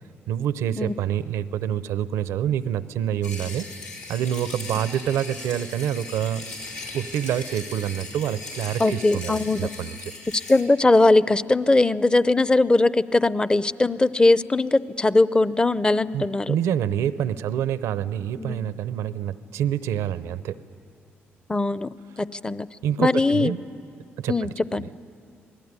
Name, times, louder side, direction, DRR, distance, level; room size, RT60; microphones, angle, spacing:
voice 1, 0.3-3.7 4.1-6.4 6.9-10.0 16.1-20.6 22.8-23.6 24.2-24.9, right 10 dB, 85° right, 14 dB, 0.7 m, -27 dB
sound 1, 3.2-10.6, left 3 dB, 85° left, 5.4 m, -38 dB
voice 2, 8.8-9.7 10.5-16.5 18.4-18.7 21.5-21.9 22.2-22.7 23.0-23.5 24.3-24.8, left 2 dB, 20° left, 16 dB, 0.6 m, -20 dB
26.5 x 18.5 x 9.6 m, 2.4 s
cardioid pair, 70°, 5 cm